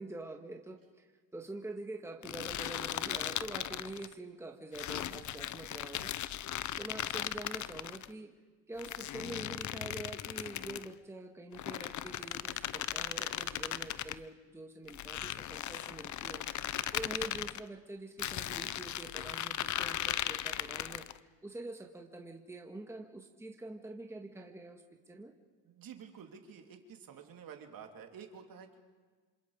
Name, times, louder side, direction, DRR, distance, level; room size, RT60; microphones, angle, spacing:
voice 1, 0.0-6.1 6.8-8.3 8.7-16.4 16.9-21.1 21.4-25.3, right 2 dB, 5° right, 2 dB, 1.9 m, -46 dB
sound 1, 2.2-4.1 4.7-8.1 8.8-10.9 11.5-14.2 14.9-17.6 18.2-21.2, left 12 dB, 40° left, 0.7 m, -37 dB
voice 2, 25.6-28.8, right 7 dB, 50° right, 4 dB, 3.0 m, -50 dB
27.5 x 26.5 x 5.0 m, 1.4 s
cardioid pair, 110°, 45 cm